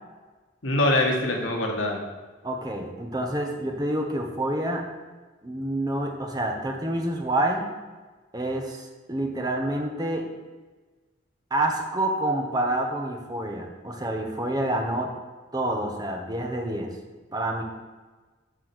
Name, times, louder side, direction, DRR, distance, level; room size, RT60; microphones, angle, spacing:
voice 1, 0.6-2.0, left 1 dB, 85° left, 1 dB, 1.8 m, -23 dB
voice 2, 2.4-4.9 5.4-7.7 8.3-10.3 11.5-15.1 15.5-16.9 17.3-17.6, right 1 dB, 20° right, 2 dB, 1.2 m, -28 dB
13.0 x 4.6 x 6.1 m, 1.3 s
head